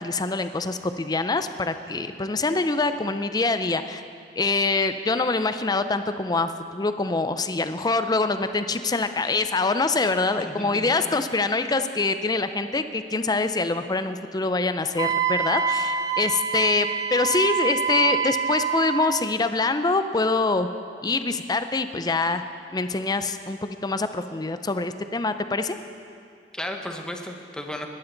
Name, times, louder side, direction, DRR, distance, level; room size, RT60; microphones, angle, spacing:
voice 1, 0.0-4.0 4.4-20.7 21.0-22.4 22.7-25.8, left 3 dB, 20° left, 10 dB, 0.5 m, -25 dB
voice 2, 10.4-11.0 26.5-27.9, left 1 dB, 5° left, 3 dB, 1.0 m, -34 dB
Wind instrument woodwind instrument, 15.0-19.1, right 6 dB, 20° right, 0.5 m, -26 dB
20.5 x 11.5 x 3.9 m, 2.4 s
head